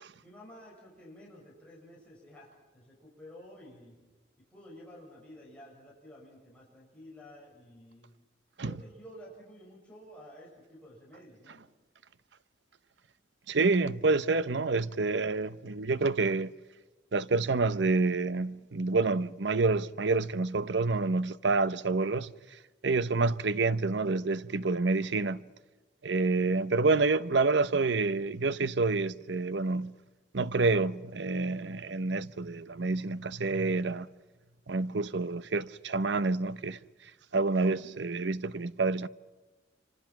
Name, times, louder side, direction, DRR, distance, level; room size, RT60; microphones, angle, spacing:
voice 1, 0.2-4.0 4.4-8.1 8.6-11.6, equal, 5° left, 6.9 m, -51 dB
voice 2, 13.5-16.5 17.1-22.3 22.8-25.4 26.0-29.9 30.3-34.1 34.7-36.8 37.3-39.1, right 3 dB, 70° right, 0.8 m, -28 dB
28.0 x 25.5 x 6.0 m
head